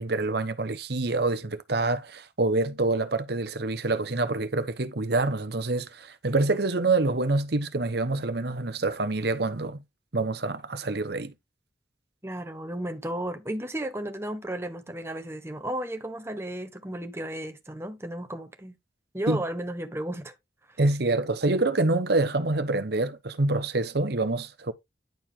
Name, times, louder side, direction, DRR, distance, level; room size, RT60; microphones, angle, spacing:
voice 1, 0.0-9.8 10.1-11.3 19.3-19.4 20.8-24.7, right 2 dB, 60° right, 1.0 m, -26 dB
voice 2, 12.2-18.8 19.1-20.3 20.7-20.8, right 1 dB, 15° right, 1.3 m, -34 dB
10.5 x 4.8 x 3.7 m
head